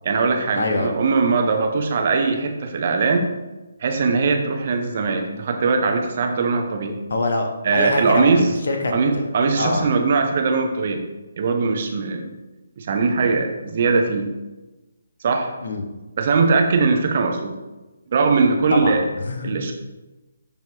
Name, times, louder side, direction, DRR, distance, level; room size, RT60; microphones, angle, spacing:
voice 1, 0.0-3.3 3.8-7.0 7.6-8.5 8.9-11.0 11.4-12.3 12.8-14.3 15.2-15.5 16.2-17.5 18.1-19.0 19.4-19.7, right 4 dB, 40° right, 4 dB, 0.9 m, -20 dB
voice 2, 0.6-1.0 7.1-9.2 9.5-9.9 15.6-15.9 18.7-19.7, left 2 dB, 55° left, 4 dB, 1.1 m, -24 dB
10.5 x 4.6 x 2.9 m, 1.1 s
figure-of-eight pair, 140°, 0 cm